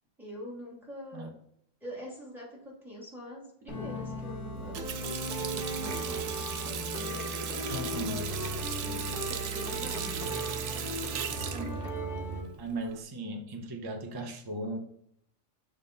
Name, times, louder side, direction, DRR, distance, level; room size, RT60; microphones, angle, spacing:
voice 1, 0.2-1.3 1.8-10.2, left 1 dB, ahead, -5 dB, 3.0 m, -44 dB
sound 1, 3.7-12.4, right 1 dB, 30° left, 1.9 m, -36 dB
Water tap faucet, 4.5-13.0, right 8 dB, 90° right, 1.0 m, -38 dB
voice 2, 7.7-8.2 11.3-11.9 12.6-14.8, right 2 dB, 25° right, 4 dB, 0.6 m, -37 dB
7.6 x 3.5 x 5.4 m, 0.72 s
omnidirectional pair, 1.3 m